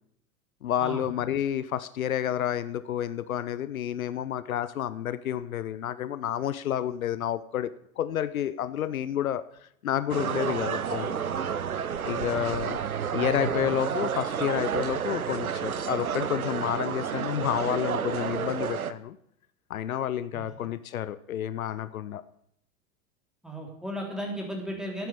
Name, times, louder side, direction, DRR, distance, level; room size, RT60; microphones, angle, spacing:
voice 1, 0.6-9.4 9.8-11.2 12.1-12.8 13.1-19.2 19.7-22.2, left 11 dB, 75° left, 16 dB, 0.6 m, -30 dB
sound 1, 10.1-18.9, right 7 dB, 85° right, 0.7 m, -30 dB
voice 2, 12.3-12.6 20.3-20.5 23.4-25.1, equal, ahead, 0 dB, 3.5 m, -35 dB
9.1 x 9.0 x 7.6 m, 0.72 s
figure-of-eight pair, 85°, 42 cm